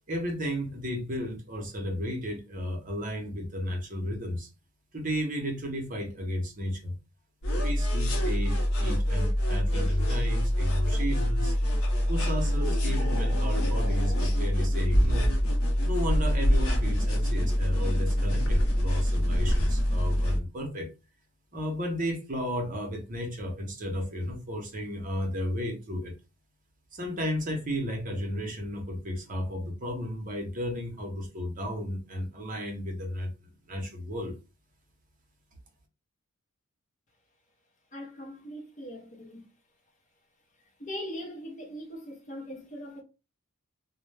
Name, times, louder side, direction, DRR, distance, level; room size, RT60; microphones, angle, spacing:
voice 1, 0.1-4.5 4.9-6.9 7.5-11.5 12.1-15.4 15.9-20.9 21.5-26.1 26.9-34.3, equal, 35° right, 0.7 m, -33 dB
sound 1, 7.4-20.4, equal, 70° left, 0.6 m, -25 dB
voice 2, 37.9-39.5 40.8-43.0, equal, 35° left, 0.6 m, -40 dB
2.2 x 2.1 x 3.2 m
head